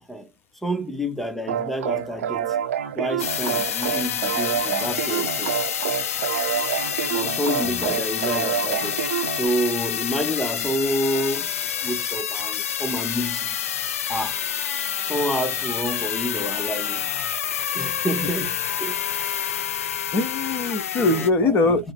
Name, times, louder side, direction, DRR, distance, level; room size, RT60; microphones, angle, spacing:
voice 1, 0.6-2.5 2.9-5.6 7.1-9.0 9.3-11.5 11.8-13.5 14.1-14.3 15.1-17.1 17.7-19.0 21.0-21.8, equal, ahead, 0.5 m, -28 dB
sound 1, 1.5-9.5, right 9 dB, 70° right, 0.9 m, -27 dB
sound 2, 3.2-21.3, left 9 dB, 70° left, 0.4 m, -28 dB
voice 2, 17.9-18.3 20.1-21.9, left 3 dB, 30° left, 1.1 m, -22 dB
4.8 x 2.0 x 4.4 m
hypercardioid pair, 105°, 8 cm